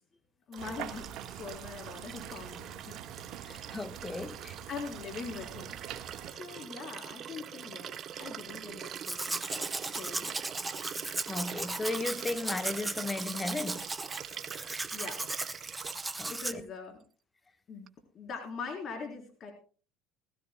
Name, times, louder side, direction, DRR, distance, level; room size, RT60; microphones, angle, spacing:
voice 1, 0.5-3.0 3.5-3.8 4.7-10.3 14.9-15.2 16.0-17.0 17.7-17.9 18.1-19.5, left 5 dB, 45° left, 4.0 m, -43 dB
Liquid, 0.5-16.6 17.9-18.0, right 9 dB, 45° right, 1.0 m, -44 dB
sound 1, 0.6-6.3, right 11 dB, 70° right, 1.5 m, -45 dB
voice 2, 3.4-4.6 11.3-13.8 16.2-16.3, left 2 dB, 20° left, 1.3 m, -35 dB
Domestic sounds home sounds, 8.9-16.5, right 2 dB, 10° right, 0.7 m, -37 dB
20.0 x 15.5 x 2.3 m
supercardioid pair, 100°, 0 cm